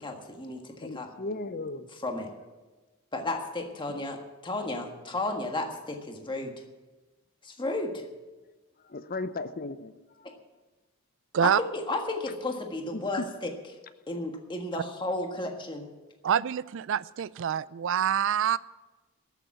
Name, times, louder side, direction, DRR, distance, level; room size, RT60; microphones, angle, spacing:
voice 1, 0.0-1.1 2.0-2.3 3.1-4.2 4.4-6.5 7.4-8.0 11.4-13.5 14.1-15.8, left 2 dB, 20° left, 3 dB, 1.5 m, -33 dB
voice 2, 0.8-1.9 6.4-6.5 8.9-9.9 10.2-10.3 12.9-13.3, left 2 dB, 40° left, 13 dB, 0.7 m, -36 dB
voice 3, 16.2-18.6, right 8 dB, 60° right, 19 dB, 0.4 m, -26 dB
13.5 x 7.0 x 9.4 m, 1.2 s
head